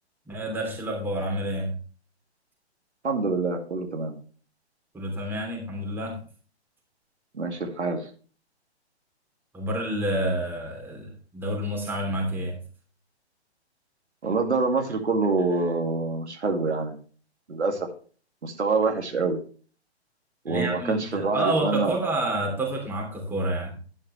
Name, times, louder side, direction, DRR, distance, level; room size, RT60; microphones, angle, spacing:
voice 1, 0.3-1.7 4.9-6.2 9.5-12.6 20.5-23.7, right 1 dB, 5° right, -1 dB, 2.9 m, -29 dB
voice 2, 3.0-4.2 7.3-8.1 14.2-17.0 17.5-17.9 18.4-19.4 20.4-22.0, right 3 dB, 80° right, 4 dB, 2.3 m, -26 dB
10.5 x 8.8 x 3.2 m, 0.40 s
figure-of-eight pair, 130°, 34 cm